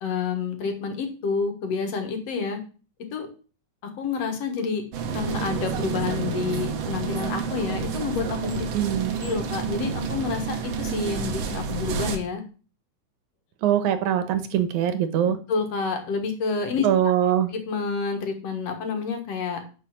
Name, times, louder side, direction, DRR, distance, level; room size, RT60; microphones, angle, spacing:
voice 1, 0.0-2.6 3.1-3.3 3.8-4.8 5.1-8.7 9.1-12.4 15.5-16.9 17.5-19.6, left 5 dB, 60° left, 5 dB, 2.5 m, -28 dB
sound 1, 4.9-12.2, right 6 dB, 65° right, 2.1 m, -29 dB
voice 2, 8.7-9.2 13.6-15.4 16.8-17.5, right 10 dB, 85° right, 10 dB, 2.5 m, -22 dB
9.9 x 5.2 x 7.3 m, 0.38 s
omnidirectional pair, 3.4 m